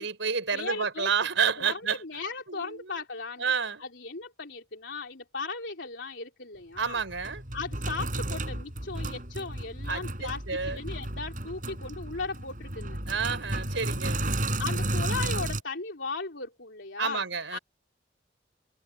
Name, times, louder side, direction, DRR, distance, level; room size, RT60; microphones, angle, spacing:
voice 1, 0.0-2.2 2.5-3.0 3.4-3.8 6.8-7.4 9.9-10.8 13.1-14.5 17.0-17.6, right 6 dB, 85° right, 4.8 m, -30 dB
voice 2, 0.5-1.1 1.6-3.5 3.8-7.0 7.5-13.0 14.6-17.2 17.5-17.6, left 4 dB, 75° left, 3.2 m, -37 dB
Sink (filling or washing), 6.8-15.6, right 1 dB, 45° right, 7.9 m, -33 dB
head